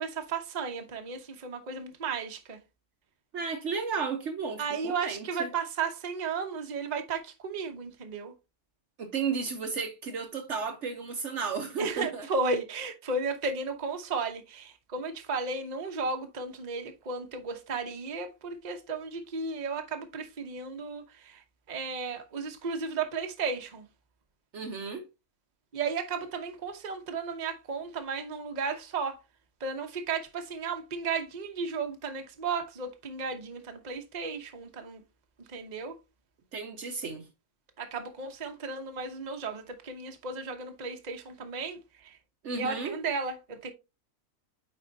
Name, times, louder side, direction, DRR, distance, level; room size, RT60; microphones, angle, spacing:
voice 1, 0.0-2.6 4.6-8.3 11.8-23.8 25.7-29.2 29.6-35.0 35.4-36.0 37.8-42.2 42.5-43.7, right 4 dB, 35° right, 1.0 m, -34 dB
voice 2, 3.3-5.5 9.0-12.3 24.5-25.0 36.5-37.2 42.4-43.0, right 5 dB, 60° right, 1.1 m, -33 dB
8.9 x 4.3 x 2.7 m
omnidirectional pair, 1.5 m